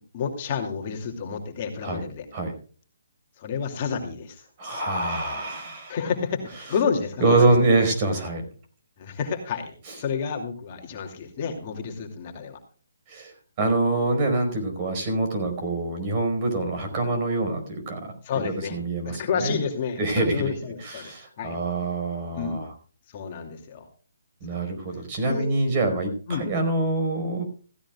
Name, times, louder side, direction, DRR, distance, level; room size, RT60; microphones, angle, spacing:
voice 1, 0.1-2.3 3.4-4.4 5.9-7.5 9.0-12.6 18.2-18.8 19.1-21.6 22.4-22.6 23.1-23.9 24.5-24.6 25.2-25.4 26.3-26.5, left 6 dB, 30° left, 2 dB, 2.6 m, -30 dB
voice 2, 4.6-6.0 7.2-8.5 9.9-10.0 13.1-18.1 18.4-19.6 20.0-20.5 20.8-22.7 24.4-27.4, right 2 dB, 25° right, 5 dB, 4.8 m, -25 dB
16.0 x 16.0 x 2.3 m, 0.41 s
hypercardioid pair, 165°, 0 cm